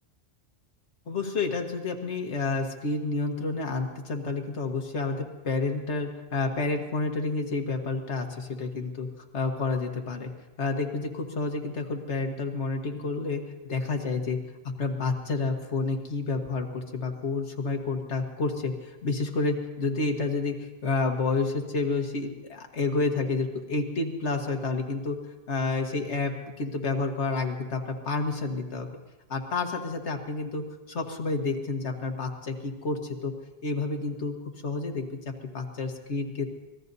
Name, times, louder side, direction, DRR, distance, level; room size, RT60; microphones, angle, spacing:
voice 1, 1.1-9.1 9.3-10.3 10.6-13.4 13.7-14.4 14.8-25.2 25.5-28.9 29.3-33.3 33.6-34.4 34.6-35.2 35.5-36.4, left 3 dB, 80° left, 3 dB, 1.8 m, -29 dB
25.5 x 19.0 x 2.7 m, 1.1 s
omnidirectional pair, 1.2 m